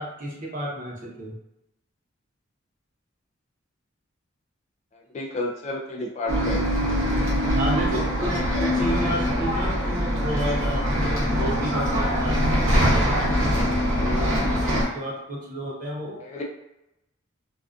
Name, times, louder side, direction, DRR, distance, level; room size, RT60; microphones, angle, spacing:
voice 1, 0.0-1.4 7.5-13.0 14.0-16.2, equal, 40° right, -3 dB, 0.7 m, -31 dB
voice 2, 5.1-6.7 8.7-8.9 16.2-16.4, left 2 dB, 35° left, 0 dB, 0.3 m, -31 dB
Bus, 6.3-14.8, equal, 85° right, 0.8 m, -23 dB
2.4 x 2.3 x 2.4 m, 0.89 s
head